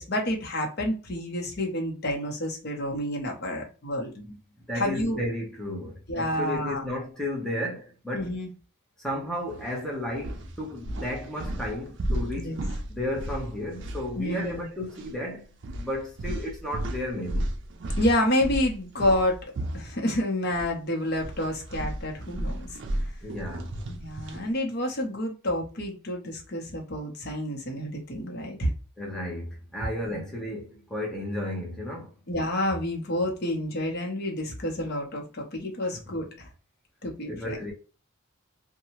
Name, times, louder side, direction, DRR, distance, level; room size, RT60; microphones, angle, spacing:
voice 1, 0.0-4.1 4.7-5.2 6.1-6.8 8.1-8.5 12.4-12.6 14.2-14.7 17.9-19.4 19.7-22.7 23.9-28.7 30.1-30.2 32.3-36.5 37.0-37.6, left 1 dB, 50° left, 0.8 m, -29 dB
voice 2, 4.1-8.3 9.0-12.6 12.9-15.5 15.8-17.5 23.2-23.7 29.0-32.2 37.3-37.7, left 1 dB, ahead, 0.7 m, -33 dB
sound 1, 9.5-9.7 10.1-14.6 14.9-15.1 15.6-20.7 21.0-24.5, right 1 dB, 60° right, 0.4 m, -34 dB
2.8 x 2.2 x 2.9 m
head